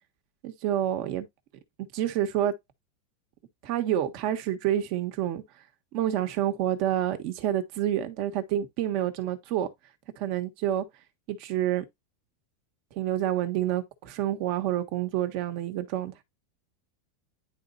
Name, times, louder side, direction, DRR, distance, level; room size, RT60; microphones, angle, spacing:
voice 1, 0.4-1.3 1.9-2.5 3.6-5.4 5.9-9.7 10.2-10.8 11.3-11.8 12.9-16.2, right 11 dB, 50° right, 1.3 m, -28 dB
10.0 x 4.2 x 2.5 m
supercardioid pair, 155°, 0 cm